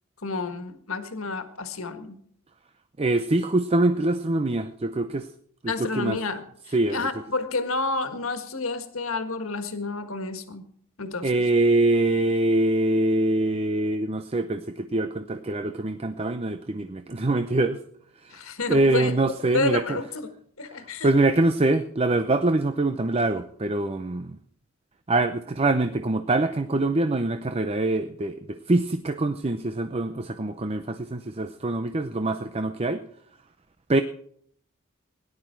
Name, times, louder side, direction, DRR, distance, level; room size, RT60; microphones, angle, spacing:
voice 1, 0.2-2.2 5.7-10.6 11.0-11.5 18.3-19.1 19.5-20.3 20.6-21.1, left 3 dB, 70° left, 9 dB, 1.7 m, -30 dB
voice 2, 3.0-5.3 5.6-6.2 6.7-7.1 11.2-17.8 18.2-18.4 18.7-20.0 21.0-24.4 25.1-33.0 33.9-34.0, right 2 dB, 30° right, 9 dB, 0.6 m, -24 dB
17.5 x 11.0 x 4.6 m, 0.64 s
head